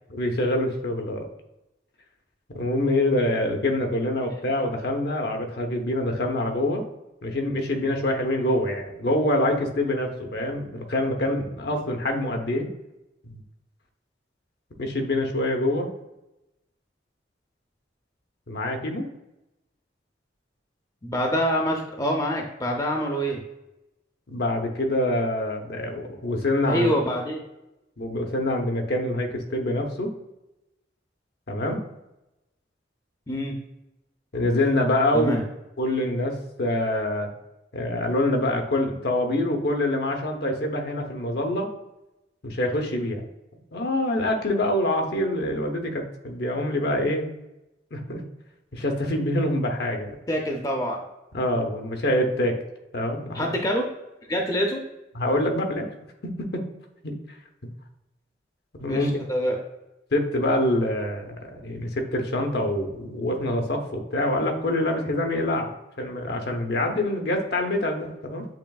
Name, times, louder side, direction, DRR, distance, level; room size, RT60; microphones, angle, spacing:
voice 1, 0.1-1.2 2.5-6.8 7.2-12.7 13.2-13.4 14.8-15.9 18.5-19.1 24.3-26.9 28.0-30.1 31.5-31.8 34.3-35.3 35.8-37.3 37.7-41.7 42.4-43.3 43.7-47.3 47.9-48.2 48.7-50.1 51.3-52.6 52.9-53.4 55.1-55.9 56.2-56.7 57.0-57.1 57.6-57.7 58.7-59.1 60.1-68.5, left 1 dB, 60° left, 3 dB, 0.8 m, -25 dB
voice 2, 21.0-23.4 26.7-27.4 33.3-33.6 35.1-35.4 50.3-51.0 53.3-53.9 54.3-54.8 58.9-59.6, equal, 20° left, 1 dB, 0.5 m, -25 dB
7.4 x 3.1 x 2.3 m, 0.93 s
head